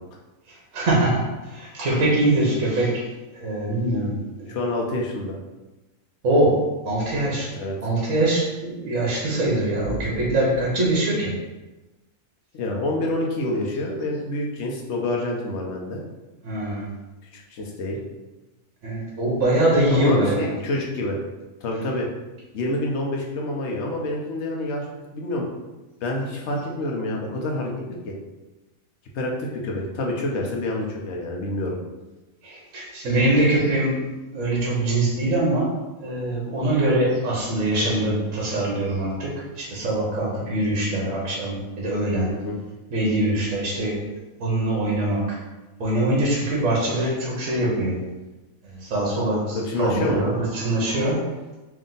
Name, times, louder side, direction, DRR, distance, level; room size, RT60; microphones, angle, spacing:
voice 1, 0.5-3.1 3.3-4.6 6.2-7.5 7.8-11.4 16.4-16.9 18.8-20.5 32.4-42.4 42.9-44.0 44.4-45.4 45.8-48.0 48.6-51.3, right 1 dB, 65° right, -4 dB, 1.3 m, -23 dB
voice 2, 4.5-5.3 7.5-7.8 12.5-16.0 17.3-18.0 19.9-21.2 21.6-22.1 22.5-24.8 25.1-25.4 26.0-27.7 28.0-28.1 29.1-31.8 42.3-42.6 49.5-50.2, left 1 dB, 60° left, 0 dB, 0.9 m, -27 dB
3.6 x 2.6 x 3.9 m, 1.1 s
omnidirectional pair, 1.5 m